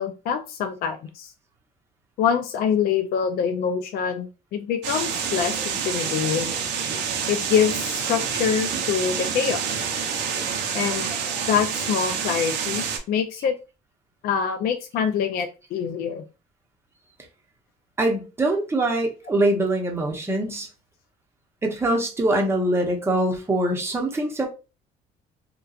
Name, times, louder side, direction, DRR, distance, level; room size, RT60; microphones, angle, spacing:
voice 1, 0.0-1.3 2.2-6.5 7.3-9.9 10.7-11.1 11.5-13.6 14.2-16.2 22.3-22.4, left 7 dB, 65° left, 0.4 m, -25 dB
sound 1, 4.8-13.0, right 6 dB, 80° right, 0.6 m, -27 dB
voice 2, 18.0-20.7 21.6-24.5, right 1 dB, 15° right, 0.7 m, -23 dB
2.7 x 2.2 x 2.3 m
cardioid pair, 110°, 17 cm